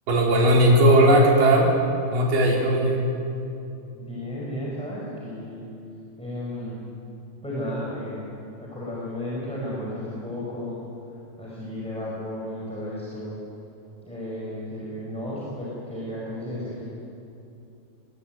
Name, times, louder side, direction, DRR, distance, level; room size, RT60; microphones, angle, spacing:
voice 1, 0.1-1.7 2.1-3.0, right 1 dB, 60° right, -2 dB, 5.3 m, -17 dB
voice 2, 3.9-5.7 6.2-6.8 7.4-8.3 8.6-10.8 11.4-13.4 14.0-16.8, left 1 dB, ahead, -6 dB, 5.2 m, -33 dB
22.0 x 21.5 x 9.3 m, 2.7 s
omnidirectional pair, 4.4 m